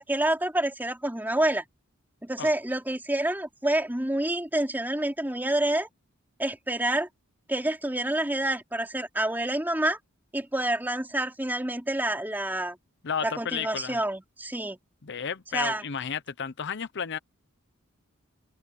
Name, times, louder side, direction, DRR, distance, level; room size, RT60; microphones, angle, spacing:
voice 1, 0.0-1.6 2.2-5.9 6.4-7.1 7.5-10.0 10.3-12.8 13.2-14.8 15.5-15.8, right 1 dB, 10° right, 3.3 m, -28 dB
voice 2, 13.0-14.0 15.0-17.2, left 7 dB, 55° left, 0.7 m, -32 dB
head